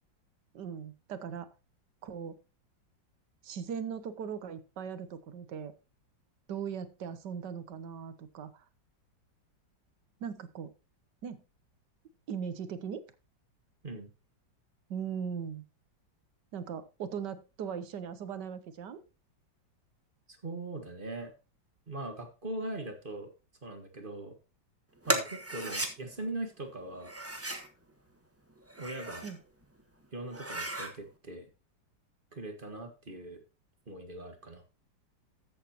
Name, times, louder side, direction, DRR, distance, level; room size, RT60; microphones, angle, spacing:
voice 1, 0.5-1.5 2.0-2.4 3.4-5.7 6.5-8.6 10.2-10.7 11.2-11.4 12.3-13.0 14.9-15.6 16.5-19.0 29.2-29.4, right 7 dB, 65° right, 12 dB, 1.5 m, -39 dB
voice 2, 20.3-21.3 21.9-23.3 23.6-24.3 25.1-27.1 28.8-29.2 30.1-31.5 32.3-33.4 33.9-34.6, right 2 dB, 30° right, 5 dB, 1.6 m, -40 dB
sound 1, 25.0-25.9 27.0-27.7 28.6-29.4 29.8-29.9 30.3-30.9, right 1 dB, 10° right, 1.1 m, -35 dB
13.5 x 8.2 x 2.9 m, 0.30 s
omnidirectional pair, 2.1 m